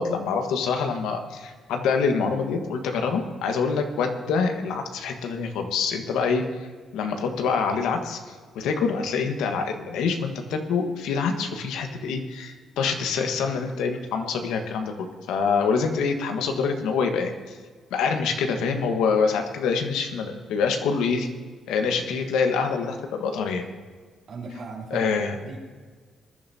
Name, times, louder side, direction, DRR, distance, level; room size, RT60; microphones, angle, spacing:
voice 1, 0.0-6.7 6.9-17.6 17.9-21.3 21.7-23.6 24.9-25.3, left 5 dB, 90° left, 5 dB, 1.4 m, -26 dB
voice 2, 24.3-25.1 25.4-25.6, right 4 dB, 60° right, -3 dB, 3.6 m, -36 dB
20.5 x 10.5 x 2.8 m, 1.5 s
cardioid pair, 90°, 0 cm